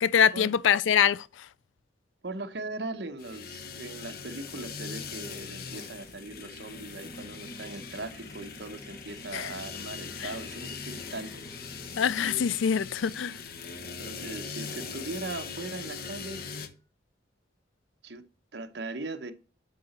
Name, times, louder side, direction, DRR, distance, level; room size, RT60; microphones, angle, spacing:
voice 1, 0.0-1.3 9.3-9.5 10.2-10.3 12.0-13.4, left 8 dB, 80° left, 0.4 m, -24 dB
voice 2, 2.2-11.8 12.3-12.5 14.0-16.4 18.0-18.3 18.5-19.3, right 2 dB, 60° right, 0.9 m, -39 dB
sound 1, 3.2-16.7, left 5 dB, 50° left, 0.9 m, -41 dB
sound 2, 6.2-12.7 15.8-15.9 16.2-16.8, equal, 15° left, 0.6 m, -50 dB
8.3 x 4.9 x 4.2 m
head